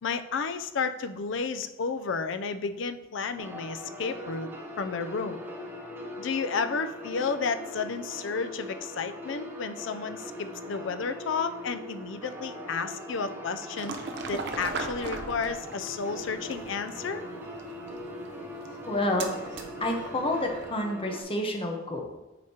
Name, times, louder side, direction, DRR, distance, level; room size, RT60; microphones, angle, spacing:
voice 1, 0.0-4.5 4.8-5.4 6.2-14.0 14.3-17.2, left 5 dB, 65° left, 10 dB, 0.4 m, -32 dB
sound 1, 3.4-21.2, equal, 10° right, 0.8 m, -41 dB
sound 2, 13.8-20.8, right 3 dB, 60° right, 0.7 m, -40 dB
voice 2, 18.9-19.3 19.8-22.2, left 1 dB, 30° left, 3 dB, 0.9 m, -29 dB
8.0 x 4.9 x 2.8 m, 1.1 s
head